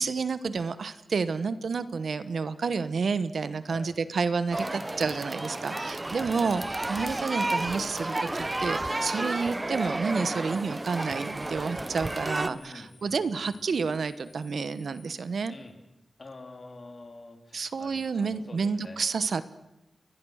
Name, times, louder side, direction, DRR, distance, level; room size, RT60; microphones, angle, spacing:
voice 1, 0.0-6.6 6.9-15.5 17.5-19.4, right 5 dB, 65° right, 14 dB, 1.1 m, -30 dB
sound 1, 4.5-12.5, right 2 dB, 20° right, 0.9 m, -32 dB
voice 2, 6.2-6.6 12.1-13.8 15.5-15.8 16.2-19.0, left 2 dB, 40° left, 5 dB, 3.5 m, -47 dB
sound 2, 6.3-8.6 8.9-9.0 10.0-15.7, left 4 dB, 75° left, 7.8 m, -60 dB
30.0 x 21.0 x 6.5 m, 0.96 s
wide cardioid pair, 125°, 0 cm